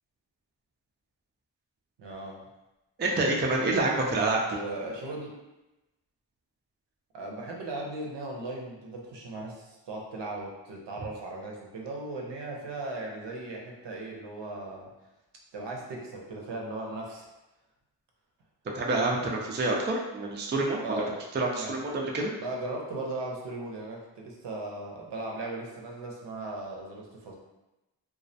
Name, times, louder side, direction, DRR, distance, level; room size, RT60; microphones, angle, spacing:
voice 1, 2.0-2.4 4.5-5.4 7.1-14.9 15.5-17.3 20.8-21.2 21.5-21.8 22.4-27.3, right 2 dB, 70° right, -2 dB, 0.7 m, -37 dB
voice 2, 3.0-4.4 18.7-20.8 21.3-22.3, right 2 dB, 25° right, -1 dB, 0.4 m, -27 dB
2.3 x 2.1 x 2.6 m, 1.0 s
cardioid pair, 55°, 45 cm